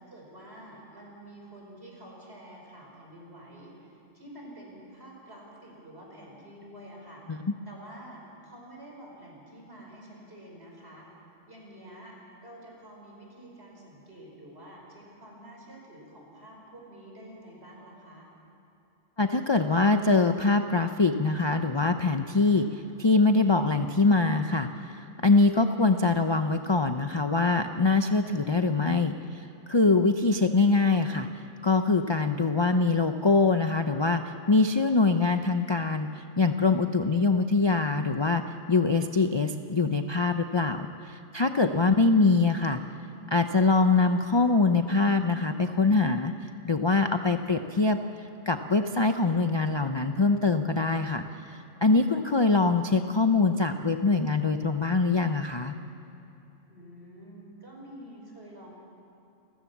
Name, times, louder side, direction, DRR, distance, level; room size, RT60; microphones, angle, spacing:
voice 1, 0.0-11.1 11.5-18.3 56.7-58.7, right 1 dB, 55° right, -2 dB, 5.4 m, -48 dB
voice 2, 19.2-31.3 31.6-38.4 38.7-42.8 43.3-46.3 46.6-48.0 48.5-55.7, left 3 dB, 30° left, 7 dB, 0.5 m, -24 dB
29.5 x 14.5 x 7.2 m, 2.9 s
omnidirectional pair, 1.3 m